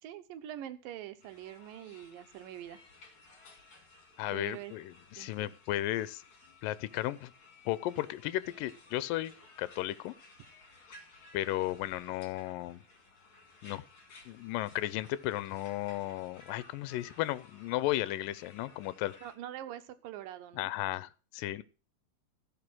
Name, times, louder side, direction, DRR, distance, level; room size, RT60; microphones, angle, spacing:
voice 1, 0.0-2.8 4.3-4.7 5.2-5.5 19.2-20.7, right 12 dB, 80° right, 11 dB, 2.5 m, -44 dB
sound 1, 1.2-19.3, left 3 dB, 40° left, 2.9 m, -57 dB
voice 2, 4.2-6.2 6.6-7.3 7.7-9.3 9.6-10.1 11.3-12.8 13.6-13.8 14.3-19.2 20.6-21.6, left 15 dB, 80° left, 17 dB, 2.3 m, -34 dB
16.0 x 5.6 x 6.1 m, 0.36 s
omnidirectional pair, 4.0 m